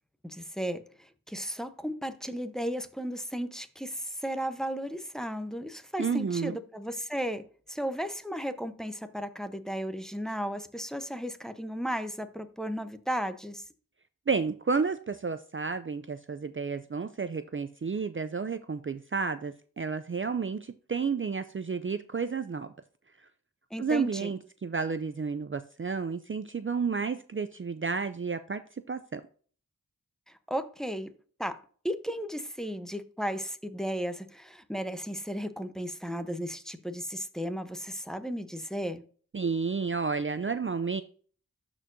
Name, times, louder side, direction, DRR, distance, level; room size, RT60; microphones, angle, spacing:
voice 1, 0.2-7.4 7.7-13.6 23.7-24.3 30.3-31.1 31.4-31.6 31.8-39.0, equal, ahead, 0.8 m, -35 dB
voice 2, 6.0-6.6 14.3-22.7 23.2-23.3 23.8-29.2 39.3-41.0, right 5 dB, 40° right, 0.4 m, -31 dB
12.5 x 4.5 x 2.6 m
wide cardioid pair, 55°, 33 cm